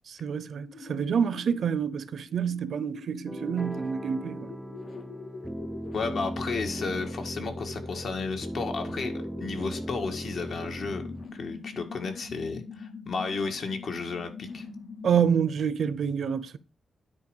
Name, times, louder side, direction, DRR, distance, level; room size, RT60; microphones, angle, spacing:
voice 1, 0.1-4.5 15.0-16.6, right 7 dB, 70° right, 0.7 m, -27 dB
sound 1, 0.6-15.5, left 4 dB, 85° left, 3.0 m, -44 dB
sound 2, 3.3-11.3, equal, 5° right, 0.4 m, -37 dB
voice 2, 5.9-9.1 9.4-11.0 11.3-14.7, left 4 dB, 65° left, 1.8 m, -33 dB
9.8 x 4.3 x 4.9 m
wide cardioid pair, 115°, 0 cm